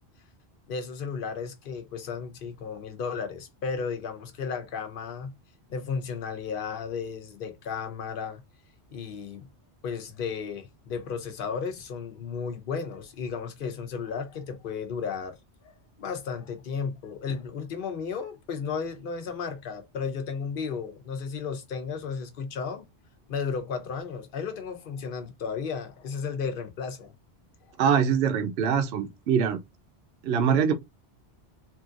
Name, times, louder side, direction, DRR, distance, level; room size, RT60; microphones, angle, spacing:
voice 1, 0.7-5.3 5.7-8.4 8.9-9.5 9.8-15.4 15.6-15.7 16.0-22.8 23.3-27.1 27.7-27.8, left 5 dB, 55° left, 0.9 m, -34 dB
voice 2, 27.8-29.6 30.2-30.7, right 7 dB, 70° right, 0.9 m, -23 dB
3.0 x 2.8 x 2.5 m
omnidirectional pair, 1.1 m